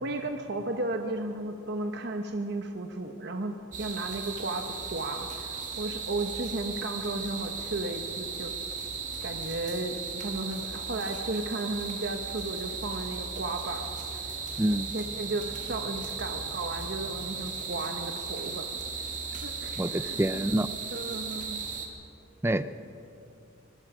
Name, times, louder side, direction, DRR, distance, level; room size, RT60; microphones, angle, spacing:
voice 1, 0.0-8.5 9.2-14.2 14.9-18.7 19.3-20.5 20.9-21.6, right 2 dB, 55° right, 4 dB, 1.1 m, -34 dB
sound 1, 3.7-21.9, right 5 dB, 40° right, 2.5 m, -36 dB
voice 2, 19.8-20.7 22.4-22.6, right 1 dB, 15° right, 12 dB, 0.5 m, -26 dB
25.5 x 21.0 x 5.1 m, 2.6 s
head